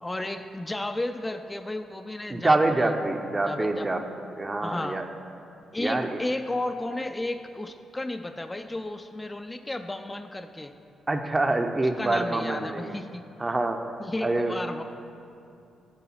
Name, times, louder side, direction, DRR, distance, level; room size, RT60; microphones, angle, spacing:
voice 1, 0.0-2.9 3.5-3.9 4.6-5.0 5.7-10.7 11.8-13.3 14.0-14.8, left 2 dB, 20° left, 6 dB, 0.4 m, -33 dB
voice 2, 2.3-4.0 4.4-5.0 5.8-6.2 11.1-12.9 13.4-13.8 14.2-14.5, right 2 dB, 30° right, 5 dB, 0.7 m, -25 dB
9.8 x 3.8 x 5.8 m, 2.6 s
hypercardioid pair, 50°, 0 cm